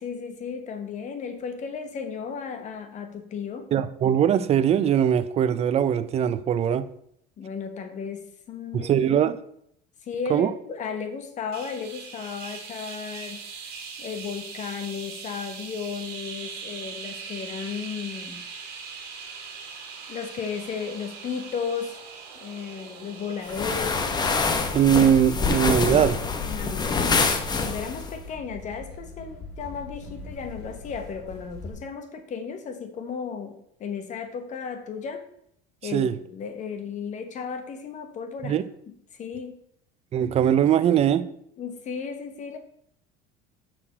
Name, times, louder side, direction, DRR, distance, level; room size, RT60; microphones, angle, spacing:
voice 1, 0.0-3.7 7.4-8.9 10.1-13.4 14.0-18.4 20.1-22.0 22.4-24.0 26.4-27.2 27.6-35.3 35.8-38.6 39.2-39.6 41.6-42.6, left 6 dB, 40° left, 1.1 m, -34 dB
voice 2, 3.7-6.9 8.7-9.4 10.3-10.5 24.7-26.2 35.9-36.2 38.4-38.6 40.1-41.3, right 9 dB, 35° right, 0.5 m, -21 dB
sound 1, 11.5-24.9, right 5 dB, 55° right, 2.2 m, -41 dB
sound 2, 23.5-28.1, left 4 dB, 20° left, 0.8 m, -25 dB
sound 3, 23.7-31.7, left 2 dB, 60° left, 2.4 m, -42 dB
6.3 x 5.9 x 4.4 m
cardioid pair, 130°, 19 cm